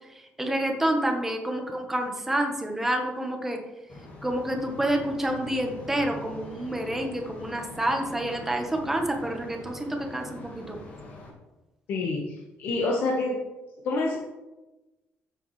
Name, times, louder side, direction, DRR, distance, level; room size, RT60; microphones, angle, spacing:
voice 1, 0.4-3.6 4.2-10.8, right 1 dB, 10° right, 2 dB, 1.2 m, -28 dB
sound 1, 3.9-11.3, left 1 dB, 45° left, 2.1 m, -44 dB
voice 2, 11.9-13.4 13.8-14.2, left 2 dB, 60° left, -2 dB, 1.4 m, -27 dB
14.0 x 7.1 x 3.2 m, 1.1 s
cardioid pair, 165°, 4 cm